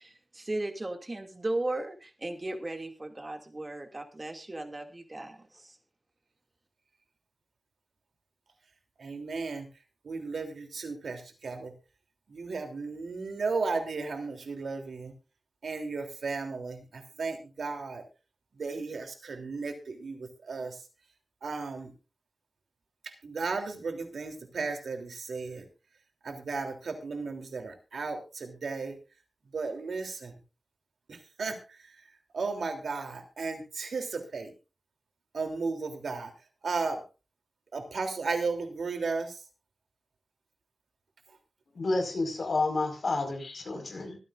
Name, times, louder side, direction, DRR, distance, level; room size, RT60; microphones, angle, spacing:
voice 1, 0.0-5.8, right 2 dB, 30° right, 5 dB, 2.5 m, -36 dB
voice 2, 9.0-9.6 10.0-11.7 12.3-15.1 15.6-16.8 17.2-18.0 18.6-20.2 20.5-20.7 21.4-21.9 23.2-25.6 26.2-28.9 29.5-30.3 31.1-31.6 32.3-34.5 35.3-36.3 36.6-37.0 37.7-39.3, right 4 dB, 85° right, 4 dB, 3.2 m, -34 dB
voice 3, 41.7-44.2, left 3 dB, 65° left, 4 dB, 5.1 m, -30 dB
24.5 x 9.4 x 2.6 m, 0.32 s
wide cardioid pair, 95°, 0 cm